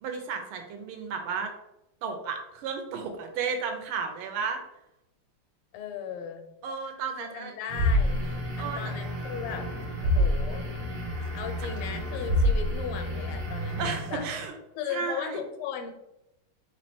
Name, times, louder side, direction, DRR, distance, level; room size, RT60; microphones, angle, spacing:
voice 1, 0.0-1.5 2.0-4.6 6.6-7.5 8.6-8.8 13.6-14.5 14.9-15.4, right 5 dB, 80° right, 5 dB, 1.6 m, -33 dB
voice 2, 5.7-6.5 7.2-9.7 10.0-10.7 11.2-14.3 14.7-15.9, left 7 dB, 85° left, 6 dB, 1.6 m, -37 dB
sound 1, 7.7-14.4, left 1 dB, 50° right, 1.1 m, -28 dB
3.8 x 3.1 x 4.3 m, 0.87 s
omnidirectional pair, 2.3 m